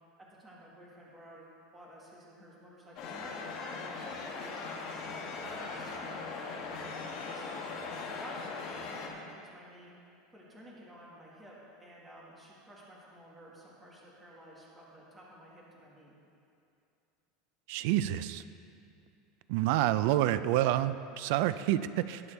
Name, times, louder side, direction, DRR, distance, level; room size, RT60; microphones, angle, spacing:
voice 1, 0.2-1.4 1.7-4.9 5.3-8.6 9.1-9.9 10.3-16.1, right 1 dB, 10° right, -5 dB, 1.8 m, -52 dB
sound 1, 3.0-9.1, left 4 dB, 40° left, 1.4 m, -40 dB
voice 2, 17.7-18.4 19.5-22.2, right 13 dB, 60° right, 14 dB, 0.4 m, -28 dB
19.0 x 7.0 x 3.4 m, 2.6 s
supercardioid pair, 170°, 0 cm